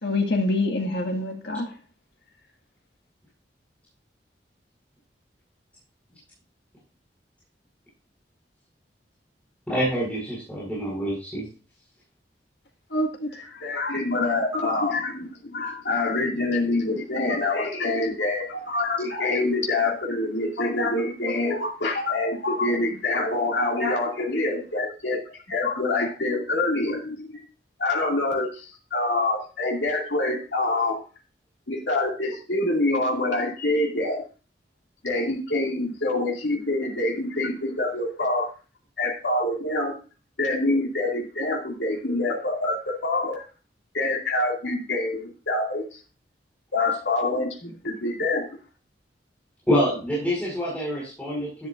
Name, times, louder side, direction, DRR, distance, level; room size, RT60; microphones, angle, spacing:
voice 1, 0.0-1.7 12.9-13.5, left 2 dB, 70° left, 3 dB, 1.9 m, -26 dB
voice 2, 9.7-11.5 49.7-51.7, equal, 10° left, -7 dB, 4.7 m, -26 dB
voice 3, 13.6-25.2 25.5-27.3 27.8-31.0 31.7-34.2 35.0-38.5 39.0-39.9 40.4-43.4 43.9-46.0 46.7-48.4, left 2 dB, 90° left, -1 dB, 2.4 m, -26 dB
12.0 x 10.5 x 2.5 m, 0.34 s
head